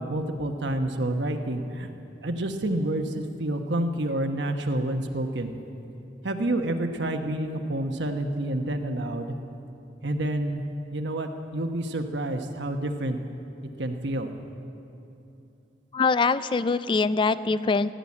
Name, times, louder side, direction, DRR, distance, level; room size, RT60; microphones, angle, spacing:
voice 1, 0.0-1.9 2.2-5.5 6.2-9.3 10.0-10.6 10.9-13.2 13.8-14.3, right 1 dB, 80° right, 5 dB, 1.1 m, -28 dB
voice 2, 15.9-17.9, left 4 dB, 25° left, 15 dB, 0.3 m, -23 dB
16.5 x 10.5 x 8.5 m, 2.9 s
head